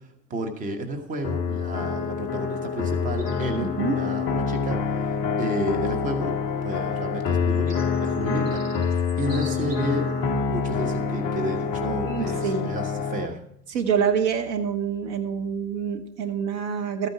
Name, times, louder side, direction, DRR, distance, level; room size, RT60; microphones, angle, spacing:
voice 1, 0.3-6.3 6.6-10.1 10.4-13.4, right 1 dB, 15° right, 6 dB, 1.2 m, -32 dB
sound 1, 1.2-13.3, left 5 dB, 15° left, 0.4 m, -26 dB
robin song, 3.2-3.6 5.1-5.2 6.4-10.1 10.7-11.0 11.6-11.8, right 2 dB, 75° right, 5.9 m, -47 dB
voice 2, 3.6-4.0 12.0-12.7 13.7-17.1, right 7 dB, 40° right, 6 dB, 1.3 m, -26 dB
13.5 x 9.2 x 4.8 m, 0.70 s
figure-of-eight pair, 95°, 48 cm